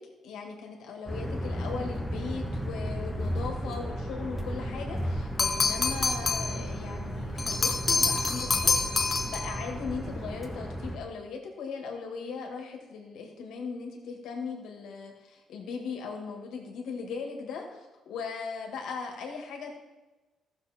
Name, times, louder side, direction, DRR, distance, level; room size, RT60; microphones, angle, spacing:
voice 1, 0.2-19.8, left 5 dB, 80° left, 2 dB, 2.0 m, -38 dB
sound 1, 1.1-11.0, equal, ahead, 1.5 m, -34 dB
sound 2, 5.4-6.6 7.4-9.6, left 4 dB, 30° left, 1.1 m, -27 dB
14.0 x 7.0 x 4.4 m, 1.1 s
cardioid pair, 90°, 0 cm